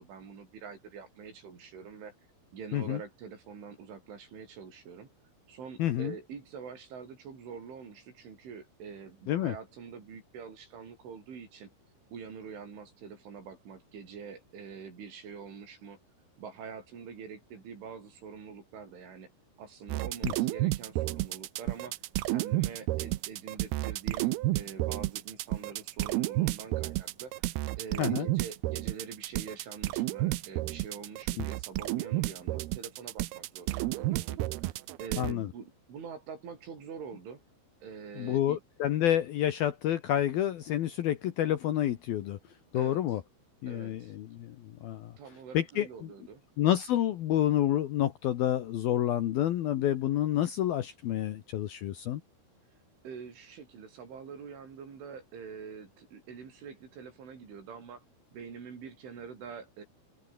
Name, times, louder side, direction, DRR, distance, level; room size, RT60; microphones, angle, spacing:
voice 1, 0.0-2.1 2.5-5.1 5.5-11.7 12.1-16.0 16.4-19.3 19.6-21.9 22.3-27.3 27.8-34.4 35.0-37.4 37.8-38.6 42.7-43.0 43.7-44.1 45.2-46.4 53.0-58.0 58.3-59.9, right 6 dB, 70° right, 7.9 m, -45 dB
voice 2, 5.8-6.1 9.3-9.5 20.2-20.3 28.0-28.3 31.4-31.5 35.2-35.5 38.2-42.4 42.7-43.2 43.6-45.1 45.5-46.1 46.6-52.2, left 12 dB, 65° left, 2.5 m, -29 dB
sound 1, 19.9-35.3, right 17 dB, 85° right, 2.2 m, -31 dB
open air
omnidirectional pair, 5.7 m